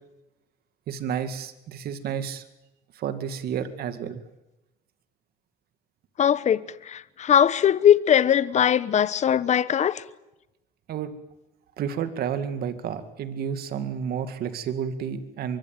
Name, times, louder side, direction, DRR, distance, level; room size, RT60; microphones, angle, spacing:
voice 1, 0.9-2.4 2.9-4.2 10.9-11.2 11.8-15.6, right 8 dB, 65° right, 2.1 m, -31 dB
voice 2, 6.2-10.0, left 9 dB, 45° left, 1.1 m, -20 dB
23.5 x 23.0 x 9.2 m
cardioid pair, 110°, 17 cm